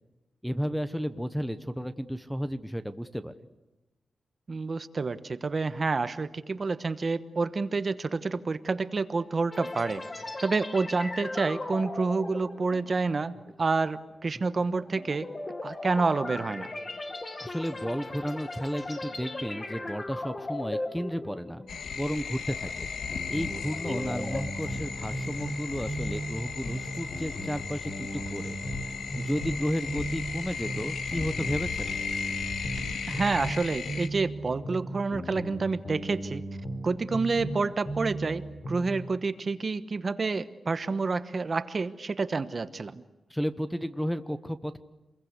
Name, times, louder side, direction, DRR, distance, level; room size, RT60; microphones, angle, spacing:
voice 1, 0.4-3.3 17.4-21.6 21.9-22.9 23.3-28.6 29.2-31.9 43.3-44.8, equal, ahead, 12 dB, 1.0 m, -33 dB
voice 2, 4.5-10.0 10.4-15.3 15.6-16.7 33.1-36.4 36.8-43.0, right 4 dB, 35° right, 12 dB, 1.1 m, -29 dB
sound 1, 9.5-22.0 22.3-22.6 23.1-24.4, left 2 dB, 25° left, 1.8 m, -38 dB
sound 2, 21.7-34.1, left 6 dB, 85° left, 1.7 m, -36 dB
sound 3, 23.1-25.6 25.9-29.6 29.9-33.6 33.9-37.6 37.9-38.9, right 1 dB, 45° left, 4.6 m, -36 dB
27.5 x 22.0 x 8.3 m, 1.0 s
wide cardioid pair, 145°, 0 cm